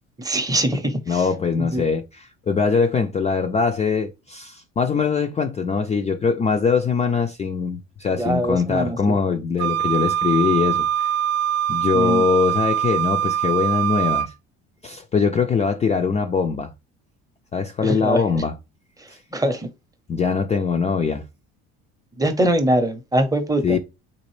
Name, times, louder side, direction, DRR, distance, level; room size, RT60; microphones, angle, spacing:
voice 1, 0.2-1.3 1.6-1.8 8.2-9.1 11.9-12.3 17.8-18.4 19.0-19.7 22.2-23.8, right 1 dB, 10° right, 0.7 m, -23 dB
voice 2, 1.1-11.1 11.7-14.3 14.8-16.7 17.5-18.5 19.1-19.2 20.1-21.2 23.6-23.8, left 5 dB, 20° left, 0.4 m, -22 dB
Wind instrument woodwind instrument, 9.6-14.3, right 10 dB, 60° right, 0.5 m, -23 dB
4.0 x 2.5 x 3.1 m
cardioid pair, 100°, 31 cm